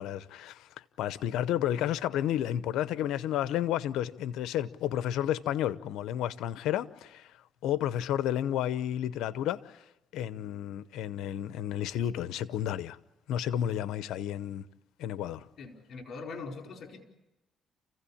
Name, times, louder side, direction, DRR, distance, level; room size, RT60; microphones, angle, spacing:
voice 1, 0.0-7.3 7.6-9.8 10.1-13.0 13.3-14.7 15.0-15.5, left 11 dB, 90° left, 0.8 m, -31 dB
voice 2, 15.6-17.0, left 4 dB, 60° left, 4.6 m, -42 dB
29.0 x 16.0 x 8.7 m
cardioid pair, 90°, 0 cm